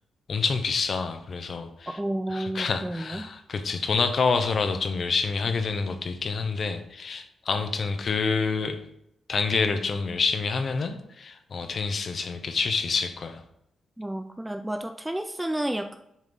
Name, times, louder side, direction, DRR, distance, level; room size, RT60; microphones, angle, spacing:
voice 1, 0.3-2.0 2.3-8.8 9.3-13.4, left 4 dB, 35° left, 8 dB, 0.8 m, -27 dB
voice 2, 1.9-3.3 14.0-15.9, right 1 dB, 5° right, 7 dB, 0.3 m, -31 dB
7.3 x 6.4 x 4.0 m, 0.79 s
wide cardioid pair, 170°, 0 cm